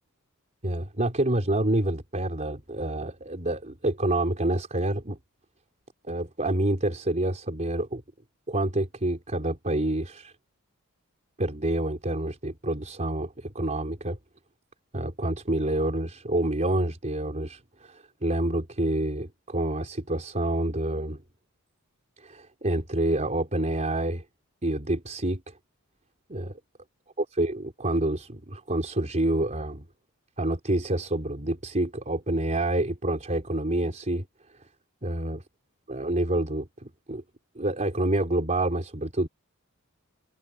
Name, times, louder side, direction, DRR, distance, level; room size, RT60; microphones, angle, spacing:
voice 1, 0.6-5.2 6.1-8.0 8.5-10.3 11.4-14.2 14.9-21.2 22.2-24.2 24.6-25.5 26.3-26.5 27.2-29.9 30.4-34.2 35.0-35.4 35.9-37.2 37.6-39.3, right 1 dB, 35° right, 3.7 m, -28 dB
head